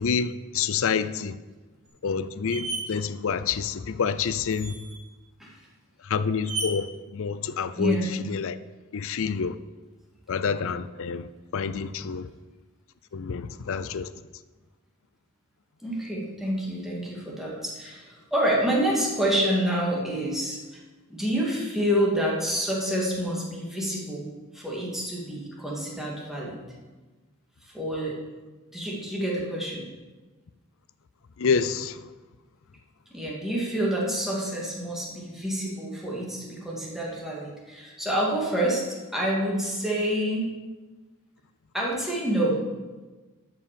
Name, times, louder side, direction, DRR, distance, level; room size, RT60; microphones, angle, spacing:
voice 1, 0.0-1.3 2.0-4.7 6.0-8.0 8.3-8.6 8.9-9.6 10.3-11.3 11.5-12.3 13.1-14.1 31.4-32.0, left 6 dB, 65° left, 14 dB, 0.5 m, -28 dB
sound 1, 1.9-2.0 2.4-2.8 4.5-5.0 6.4-6.7, right 3 dB, 35° right, 4.0 m, -33 dB
voice 2, 7.8-8.2 15.8-20.8 21.1-26.6 27.6-28.2 28.7-29.9 33.1-40.5 41.7-42.6, right 1 dB, ahead, -4 dB, 2.5 m, -28 dB
11.5 x 6.1 x 6.9 m, 1.3 s
head